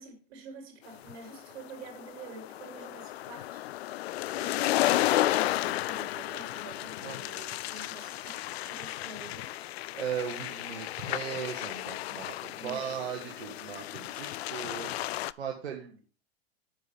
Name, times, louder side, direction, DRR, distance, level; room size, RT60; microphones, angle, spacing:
voice 1, 0.0-3.6 4.3-4.9 5.3-9.5 12.6-12.9, right 3 dB, 65° right, 2 dB, 4.5 m, -47 dB
sound 1, 1.1-15.3, left 15 dB, 70° left, 0.5 m, -33 dB
voice 2, 9.6-16.0, right 8 dB, 85° right, 1 dB, 1.6 m, -38 dB
9.5 x 7.4 x 3.5 m, 0.39 s
hypercardioid pair, 105°, 32 cm